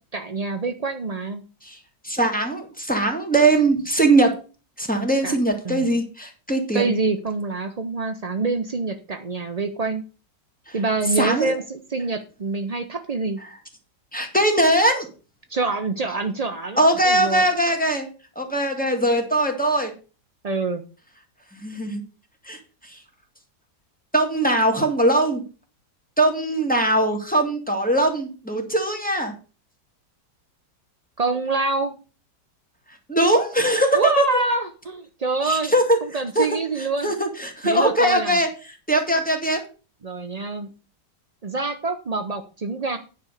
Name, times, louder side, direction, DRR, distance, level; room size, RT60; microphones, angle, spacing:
voice 1, 0.1-1.4 5.2-5.4 5.6-5.9 6.7-10.0 10.7-13.4 15.5-17.5 20.4-20.8 31.2-31.9 33.9-35.7 36.0-37.1 37.6-38.4 40.0-40.7 41.4-43.0, right 3 dB, 70° right, 7 dB, 0.3 m, -26 dB
voice 2, 2.0-4.3 4.8-6.9 10.7-10.8 11.2-11.5 14.1-15.1 16.8-18.1 18.4-19.9 21.5-22.0 22.5-22.6 22.9-23.0 24.1-25.4 26.2-29.3 33.1-34.2 35.4-36.0 36.4-38.5 38.9-39.6, right 1 dB, 5° left, 3 dB, 1.9 m, -21 dB
9.8 x 5.3 x 6.4 m, 0.34 s
omnidirectional pair, 1.9 m